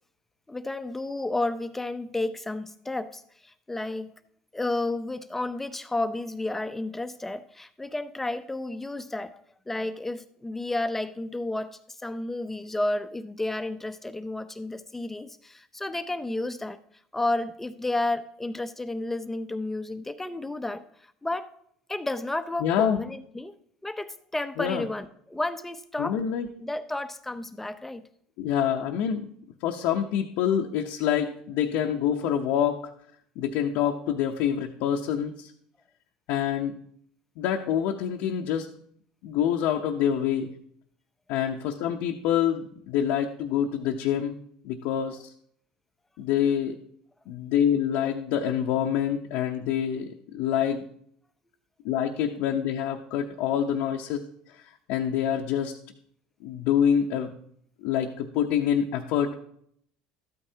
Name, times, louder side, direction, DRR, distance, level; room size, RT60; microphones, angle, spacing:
voice 1, 0.5-4.1 4.5-16.8 17.1-21.5 21.9-23.5 23.8-26.2 26.6-28.1, left 2 dB, 10° left, 11 dB, 0.7 m, -32 dB
voice 2, 22.6-23.0 24.6-24.8 26.0-26.5 28.4-29.3 29.6-32.8 33.4-35.5 36.3-36.8 37.4-38.7 39.2-40.5 41.3-44.4 44.6-45.3 46.2-46.8 47.3-50.8 51.8-54.2 54.9-55.8 56.4-57.3 57.8-59.4, left 9 dB, 70° left, 1 dB, 0.8 m, -26 dB
13.0 x 8.9 x 2.8 m, 0.66 s
supercardioid pair, 95°, 3 cm